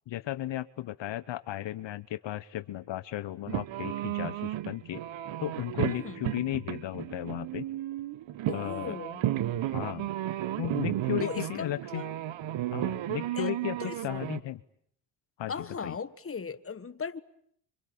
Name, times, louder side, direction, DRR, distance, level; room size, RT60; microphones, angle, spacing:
voice 1, 0.1-5.0 5.4-7.6 8.5-9.0 9.7-10.1 10.6-12.0 12.7-14.6 15.4-16.0, left 13 dB, 70° left, 1.1 m, -35 dB
sound 1, 3.5-14.4, right 13 dB, 75° right, 1.2 m, -33 dB
voice 2, 5.9-6.2 8.5-9.2 11.2-12.1 13.4-13.5 13.8-14.0 15.5-17.2, left 5 dB, 30° left, 1.5 m, -38 dB
26.0 x 25.5 x 8.7 m
supercardioid pair, 70°, 46 cm